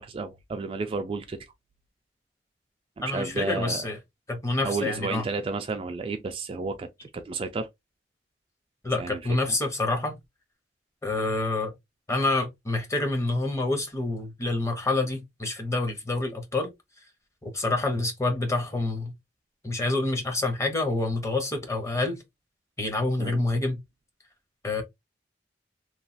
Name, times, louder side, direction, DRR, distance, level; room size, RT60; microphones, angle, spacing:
voice 1, 0.0-1.4 3.0-3.8 4.6-6.9 7.1-7.7 9.0-9.2 9.5-9.6 23.2-23.4, right 4 dB, 30° right, 0.3 m, -32 dB
voice 2, 3.0-4.0 4.3-5.3 8.8-10.1 11.0-11.7 12.1-16.7 17.4-19.1 19.6-22.2 22.8-23.8 24.6-24.8, left 2 dB, 15° left, 0.7 m, -27 dB
3.0 x 2.3 x 2.6 m
head